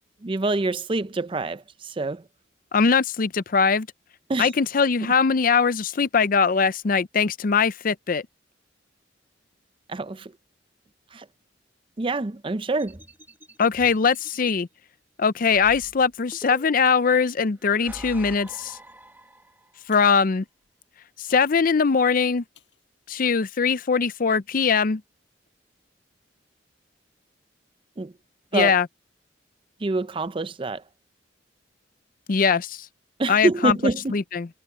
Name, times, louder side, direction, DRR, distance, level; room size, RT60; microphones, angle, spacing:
voice 1, 0.2-2.3 4.3-4.5 5.0-5.1 9.9-10.3 11.1-11.3 12.0-13.0 28.0-28.1 28.5-28.7 29.8-30.8 33.2-34.2, right 2 dB, 25° right, 0.5 m, -26 dB
voice 2, 2.7-3.9 4.4-8.2 13.6-14.7 15.2-18.8 19.9-20.4 21.2-22.4 23.1-25.0 28.5-28.9 32.3-32.9 33.3-33.8 34.1-34.5, left 5 dB, 45° left, 0.5 m, -21 dB
sound 1, 12.8-14.5 15.4-17.0 17.6-19.8, right 1 dB, 10° right, 1.2 m, -45 dB
sound 2, 18.4-19.0 19.8-21.7 22.5-22.9 23.4-23.5, left 10 dB, 70° left, 5.9 m, -57 dB
head